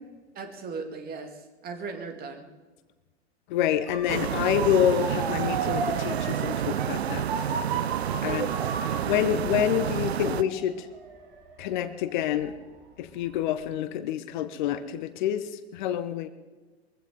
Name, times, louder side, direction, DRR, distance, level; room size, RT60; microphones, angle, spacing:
voice 1, 0.4-2.5 8.2-8.6, right 4 dB, 30° right, 6 dB, 2.3 m, -38 dB
voice 2, 3.5-7.2 8.2-8.5 9.1-10.9 11.6-12.5 13.0-16.3, left 10 dB, 45° left, 12 dB, 1.0 m, -27 dB
Motor vehicle (road) / Siren, 3.9-12.8 13.2-13.6, right 5 dB, 55° right, 2.7 m, -36 dB
sound 1, 4.1-10.4, right 9 dB, 70° right, 0.6 m, -29 dB
22.5 x 15.5 x 3.8 m, 1.3 s
figure-of-eight pair, 90°, 33 cm